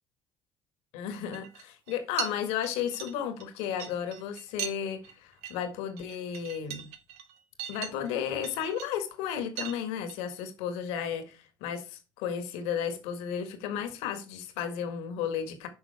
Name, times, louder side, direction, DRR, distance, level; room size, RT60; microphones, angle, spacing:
voice 1, 0.9-6.9 7.7-15.7, left 8 dB, 70° left, 1.7 m, -33 dB
sound 1, 1.3-1.6 1.9-2.3 2.6-4.8 5.0-5.1 5.4-5.6 5.9-8.1 8.4-9.0 9.6-9.8 10.1-10.3, right 10 dB, 70° right, 1.1 m, -39 dB
9.8 x 5.9 x 3.4 m
hypercardioid pair, 55°, 11 cm